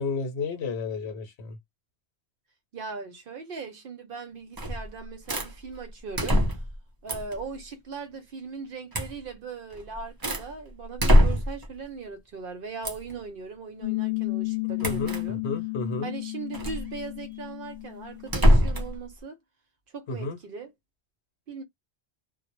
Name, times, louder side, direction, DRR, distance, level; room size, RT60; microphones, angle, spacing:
voice 1, 0.0-1.6 14.8-16.1 20.1-20.4, left 4 dB, 75° left, 1.0 m, -32 dB
voice 2, 2.7-6.4 7.0-15.4 16.0-19.4 19.9-20.7 21.5-21.6, right 4 dB, 60° right, 0.7 m, -39 dB
sound 1, 4.6-4.9 5.3-5.5 6.2-6.8 7.1-7.4 8.9-9.2 9.7-10.5 11.0-11.7 12.8-13.1 14.8-15.2 16.5-16.8 18.3-19.0, equal, 30° right, 0.5 m, -22 dB
Piano, 13.8-18.9, left 27 dB, 45° left, 0.6 m, -33 dB
2.0 x 2.0 x 2.9 m
omnidirectional pair, 1.1 m